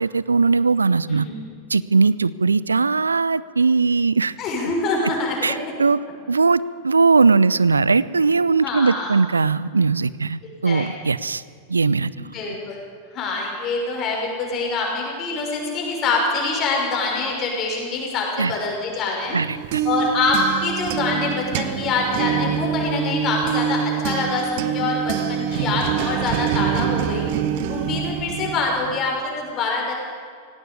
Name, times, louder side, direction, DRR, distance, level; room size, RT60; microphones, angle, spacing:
voice 1, 0.0-1.3 1.7-4.3 5.4-6.0 6.3-11.4 11.7-12.1 18.4-18.5 19.3-19.8, right 4 dB, 75° right, 19 dB, 0.5 m, -19 dB
voice 2, 4.4-5.6 8.6-9.2 10.4-10.9 12.2-12.8 13.1-19.4 19.8-27.3 27.7-29.9, left 3 dB, 35° left, -1 dB, 6.2 m, -25 dB
sound 1, 19.4-29.0, right 9 dB, 50° right, 1.2 m, -25 dB
18.0 x 17.0 x 8.5 m, 2.1 s
figure-of-eight pair, 90°, 0 cm